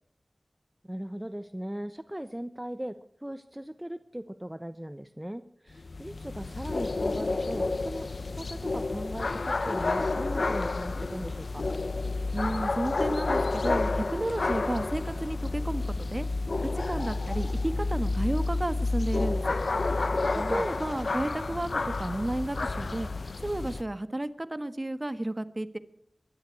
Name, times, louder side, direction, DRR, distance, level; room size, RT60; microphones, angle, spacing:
voice 1, 0.8-11.7 20.3-20.6, right 1 dB, 15° right, 11 dB, 0.9 m, -39 dB
sound 1, 5.7-23.8, left 3 dB, 80° left, 0.8 m, -30 dB
voice 2, 12.3-16.3 16.6-19.6 20.5-23.1 23.4-25.8, right 1 dB, 35° right, 12 dB, 1.4 m, -32 dB
23.0 x 11.5 x 4.7 m, 0.69 s
wide cardioid pair, 40°, 0 cm